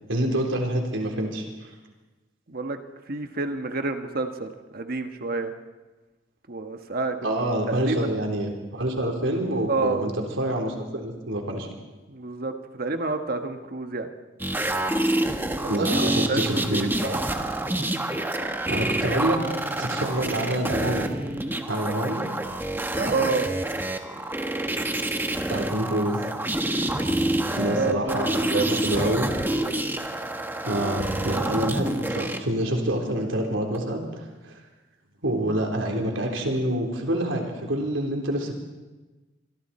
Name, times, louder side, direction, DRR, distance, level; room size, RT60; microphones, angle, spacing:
voice 1, 0.1-1.5 7.2-11.7 15.7-17.2 18.7-19.4 19.8-21.1 21.7-22.3 25.5-26.2 27.6-29.3 30.7-34.6 35.2-38.6, right 1 dB, 80° right, 2 dB, 3.7 m, -27 dB
voice 2, 2.5-2.8 3.1-5.5 6.5-7.2 7.7-8.2 9.7-10.1 12.1-14.1 15.7-16.0 16.3-16.9 22.9-23.5 27.7-29.0, right 3 dB, 50° right, 6 dB, 1.3 m, -29 dB
sound 1, 14.4-32.4 33.7-33.8, right 1 dB, 10° right, 1.3 m, -27 dB
26.0 x 23.5 x 4.3 m, 1.2 s
head